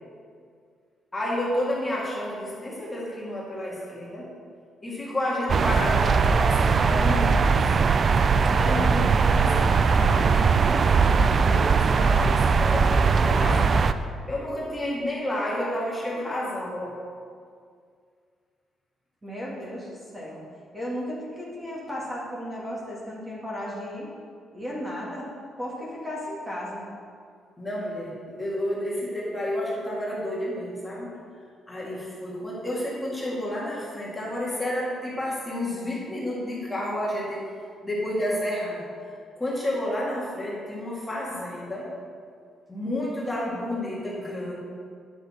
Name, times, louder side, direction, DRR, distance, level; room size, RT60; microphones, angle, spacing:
voice 1, 1.1-4.3 4.8-7.4 8.4-13.8 14.3-16.9 27.6-31.2 31.7-37.4 37.8-38.9 39.4-41.9 42.7-44.6, left 1 dB, 15° left, -6 dB, 1.9 m, -30 dB
sound 1, 5.5-13.9, right 5 dB, 40° right, 0.3 m, -20 dB
voice 2, 19.2-20.4 20.7-24.1 24.5-25.3 25.6-26.8, equal, 15° right, -5 dB, 2.1 m, -35 dB
9.1 x 6.9 x 4.3 m, 2.2 s
cardioid pair, 115°, 0 cm